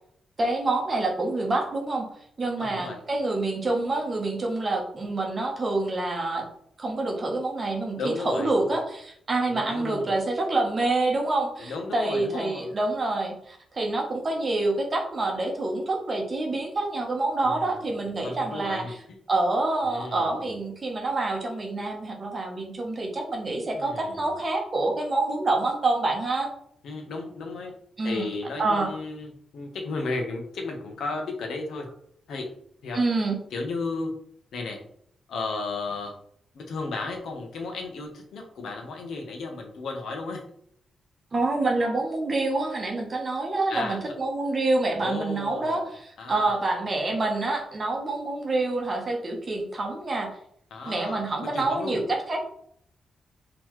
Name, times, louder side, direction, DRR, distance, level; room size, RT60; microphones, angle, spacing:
voice 1, 0.4-2.1 2.4-6.4 6.8-19.0 19.3-26.5 28.0-28.3 28.6-28.9 32.9-33.4 41.3-50.3 50.9-52.4, right 2 dB, 30° right, 1 dB, 0.8 m, -27 dB
voice 2, 2.6-3.0 7.9-8.8 9.5-10.1 11.6-12.7 17.4-17.9 18.2-18.9 19.8-20.5 23.7-24.3 26.8-27.7 28.0-31.9 32.3-32.5 32.8-33.0 33.5-34.1 34.5-34.8 35.3-36.1 36.5-40.4 43.7-44.0 45.0-45.9 46.2-46.6 50.7-52.0, left 3 dB, 75° left, 3 dB, 0.8 m, -34 dB
3.8 x 2.9 x 3.0 m, 0.68 s
wide cardioid pair, 170°, 0 cm